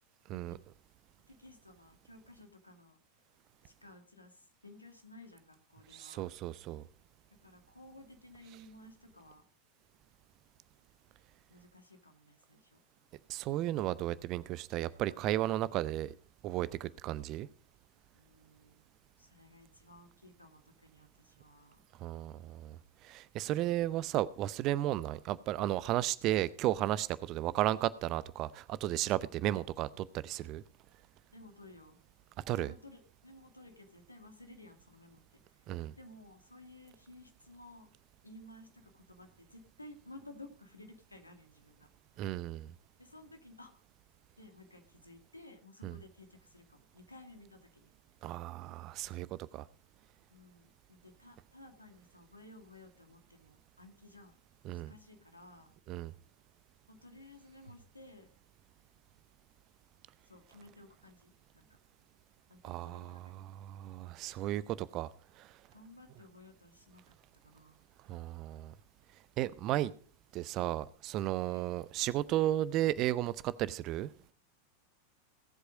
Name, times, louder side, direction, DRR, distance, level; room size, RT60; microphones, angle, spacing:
voice 1, 1.3-3.0 3.6-6.3 7.3-9.4 11.5-12.8 18.1-18.9 19.2-21.8 29.2-29.9 31.3-32.0 32.6-35.2 35.5-35.7 36.0-37.9 38.2-41.9 42.1-42.3 43.0-43.7 44.4-47.9 50.3-54.4 54.6-55.7 56.9-58.3 60.3-61.7 62.5-63.4 65.7-67.0 67.4-67.8 71.4-71.7, left 2 dB, 85° left, 2.1 m, -55 dB
voice 2, 5.9-6.8 13.3-16.1 16.4-17.5 22.0-30.6 32.4-32.7 35.7-36.0 42.2-42.7 45.8-46.0 48.2-49.3 49.5-49.6 54.6-54.9 55.9-56.1 62.6-65.1 65.4-65.5 68.1-68.7 69.4-69.9 70.3-74.1, right 14 dB, 40° right, 0.6 m, -34 dB
17.5 x 8.0 x 5.1 m
figure-of-eight pair, 90°, 0 cm